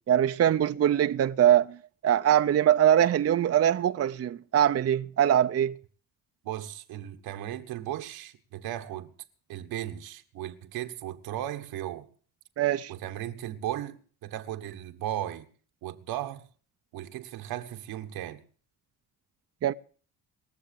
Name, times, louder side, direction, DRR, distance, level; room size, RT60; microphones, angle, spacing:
voice 1, 0.1-1.8 2.0-5.7 12.6-12.9 19.6-19.7, right 10 dB, 40° right, 0.7 m, -22 dB
voice 2, 6.4-9.1 9.5-12.1 12.9-15.5 15.8-16.5 16.9-18.4, right 12 dB, 85° right, 1.6 m, -36 dB
21.0 x 7.3 x 8.5 m
cardioid pair, 95°, 36 cm